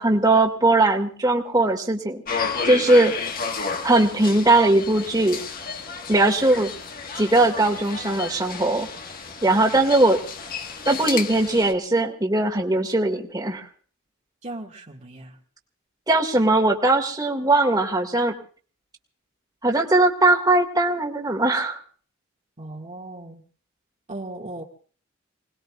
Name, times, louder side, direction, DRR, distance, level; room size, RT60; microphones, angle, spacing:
voice 1, 0.0-2.2 2.7-3.1 3.8-5.4 6.1-6.7 7.2-8.9 9.4-10.2 10.9-13.6 16.1-18.3 19.6-21.8, right 2 dB, 20° right, 1 dB, 2.0 m, -19 dB
sound 1, 2.3-11.7, left 5 dB, 45° left, 1.5 m, -32 dB
voice 2, 14.4-15.4 22.6-23.4 24.1-24.6, right 2 dB, 35° right, 0 dB, 1.9 m, -37 dB
28.5 x 20.0 x 2.4 m, 0.44 s
head